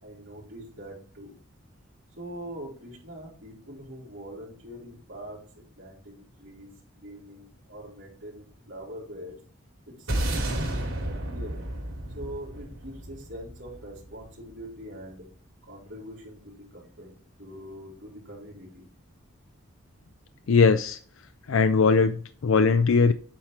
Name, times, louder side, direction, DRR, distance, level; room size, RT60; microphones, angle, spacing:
voice 1, 0.0-1.4 2.2-5.4 5.8-6.7 7.0-9.3 9.9-11.5 12.1-15.2 15.7-18.8, equal, 60° right, 3.3 m, -43 dB
sound 1, 10.1-14.5, right 1 dB, 85° right, 2.9 m, -32 dB
voice 2, 20.5-21.0 21.5-23.1, left 4 dB, 75° left, 0.4 m, -20 dB
8.5 x 4.4 x 4.5 m
head